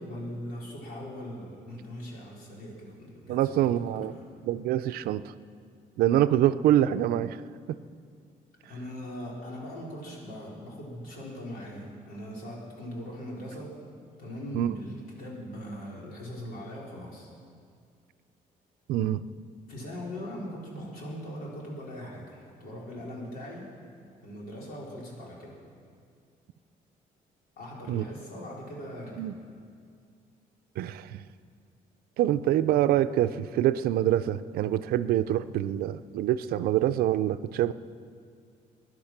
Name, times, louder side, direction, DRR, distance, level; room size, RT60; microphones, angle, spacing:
voice 1, 0.0-4.2 8.6-13.8 14.2-17.3 19.7-23.7 24.2-25.6 27.6-29.3, equal, 75° left, -3 dB, 4.1 m, -40 dB
voice 2, 3.3-4.1 4.4-5.2 6.0-7.4 14.5-14.7 18.9-19.2 27.9-28.1 29.2-29.3 30.8-31.2 32.2-37.7, right 12 dB, 85° right, 13 dB, 0.5 m, -25 dB
21.0 x 11.0 x 6.0 m, 2.2 s
cardioid pair, 150°, 15 cm